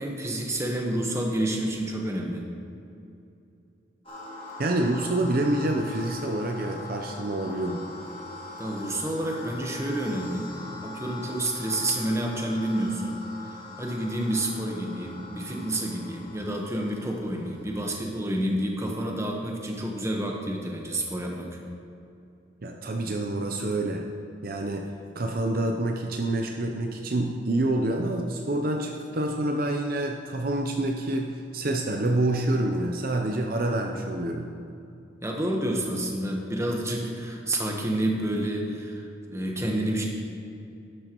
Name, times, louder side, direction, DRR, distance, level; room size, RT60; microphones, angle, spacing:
voice 1, 0.0-2.4 8.6-10.5 10.8-13.2 13.8-21.6 35.2-40.1, right 1 dB, 15° right, 0 dB, 1.1 m, -29 dB
sound 1, 4.1-18.2, left 2 dB, 30° left, 2.1 m, -42 dB
voice 2, 4.6-7.9 22.6-24.0 24.4-24.9 25.2-34.5, right 1 dB, 50° right, 3 dB, 0.6 m, -27 dB
12.0 x 10.0 x 3.0 m, 2.7 s
head